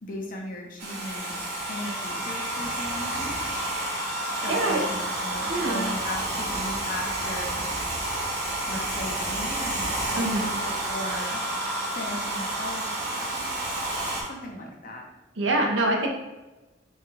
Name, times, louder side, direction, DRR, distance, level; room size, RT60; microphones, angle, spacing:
voice 1, 0.0-3.3 4.4-7.6 8.7-11.4 11.9-13.5 14.2-15.0, left 1 dB, 50° left, 0 dB, 0.9 m, -37 dB
Domestic sounds home sounds, 0.8-14.2, right 1 dB, 60° right, 1.3 m, -30 dB
voice 2, 4.5-4.8 5.5-5.8 10.1-10.5 14.2-14.3 15.4-16.1, right 2 dB, 90° right, 1 dB, 0.9 m, -25 dB
4.5 x 2.5 x 4.5 m, 1.1 s
head